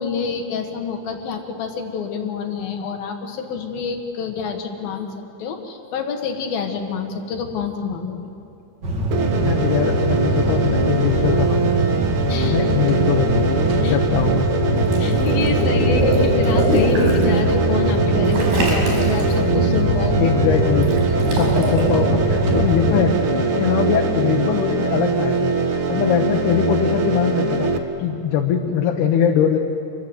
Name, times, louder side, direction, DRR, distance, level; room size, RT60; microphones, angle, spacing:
voice 1, 0.0-5.1 5.4-8.3 12.3-12.6 13.8-14.0 15.0-20.3 21.1-21.4, left 6 dB, 70° left, 4 dB, 3.4 m, -27 dB
sound 1, 8.8-23.0, right 1 dB, 35° right, 2.0 m, -23 dB
sound 2, 9.1-27.8, right 3 dB, 65° right, 1.3 m, -22 dB
voice 2, 9.4-11.9 12.4-13.5 13.8-14.4 20.2-20.9 21.4-25.6 25.9-27.7 28.0-29.6, left 8 dB, 90° left, 2 dB, 3.3 m, -22 dB
Water / Liquid, 14.8-17.2 18.3-19.3 20.8-21.8, right 1 dB, 80° right, 6.9 m, -23 dB
28.5 x 21.5 x 8.0 m, 2.7 s
omnidirectional pair, 4.5 m